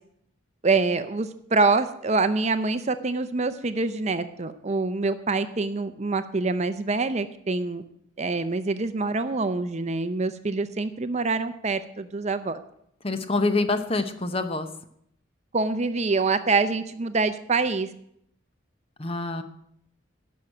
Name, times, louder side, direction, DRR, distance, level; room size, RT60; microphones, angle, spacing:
voice 1, 0.6-7.8 8.2-12.6 15.5-17.9, right 3 dB, 35° right, 11 dB, 0.6 m, -25 dB
voice 2, 13.0-14.7 19.0-19.4, left 2 dB, 30° left, 9 dB, 0.8 m, -26 dB
11.5 x 6.3 x 9.0 m, 0.71 s
head